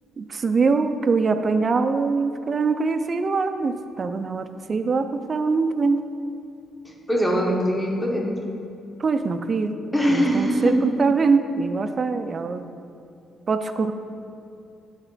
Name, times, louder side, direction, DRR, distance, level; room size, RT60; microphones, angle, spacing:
voice 1, 0.2-6.0 9.0-9.7 10.1-12.7 13.5-13.9, right 4 dB, 40° right, 9 dB, 0.4 m, -23 dB
voice 2, 6.8-8.3 9.9-10.8, equal, 10° left, -1 dB, 1.1 m, -22 dB
9.0 x 3.6 x 3.8 m, 2.6 s
cardioid pair, 90°, 0 cm